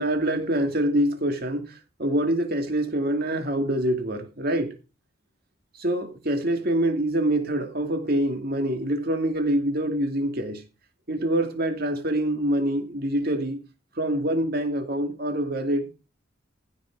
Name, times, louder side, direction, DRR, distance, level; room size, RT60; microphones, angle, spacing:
voice 1, 0.0-1.7 2.0-4.7 5.8-10.6 11.1-13.6 14.0-15.9, right 1 dB, 50° right, 2.4 m, -25 dB
15.5 x 6.3 x 4.7 m
head